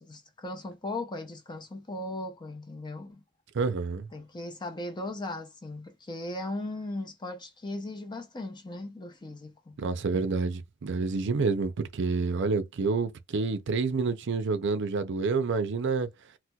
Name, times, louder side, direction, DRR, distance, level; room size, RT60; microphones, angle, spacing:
voice 1, 0.0-3.2 4.1-9.8, left 2 dB, 20° left, 0.5 m, -38 dB
voice 2, 3.5-4.1 9.8-16.1, right 4 dB, 60° right, 0.5 m, -28 dB
4.2 x 2.1 x 2.3 m
head